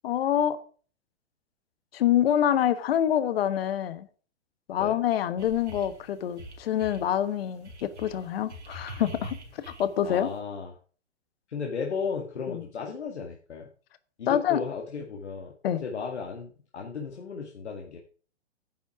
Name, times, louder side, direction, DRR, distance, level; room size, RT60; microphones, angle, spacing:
voice 1, 0.0-0.6 1.9-4.1 4.7-9.4 9.7-10.3 12.5-12.6 14.3-14.6 15.6-15.8, left 10 dB, 60° left, 14 dB, 1.3 m, -26 dB
sound 1, 5.4-6.0 6.3-7.1 7.7-10.2, right 1 dB, 85° right, 3.6 m, -42 dB
voice 2, 10.0-10.7 11.5-13.7 14.2-15.5 15.8-18.0, left 5 dB, 75° left, 1 dB, 2.0 m, -35 dB
10.0 x 7.9 x 4.8 m, 0.41 s
hypercardioid pair, 115°, 34 cm